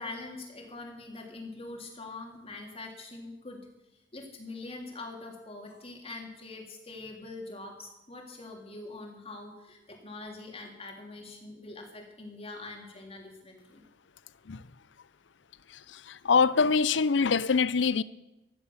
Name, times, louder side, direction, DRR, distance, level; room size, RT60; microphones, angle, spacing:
voice 1, 0.0-3.6 4.1-13.8, left 2 dB, 35° left, 3.3 m, -43 dB
voice 2, 16.2-18.0, left 5 dB, 70° left, 0.6 m, -23 dB
15.5 x 11.5 x 7.2 m
head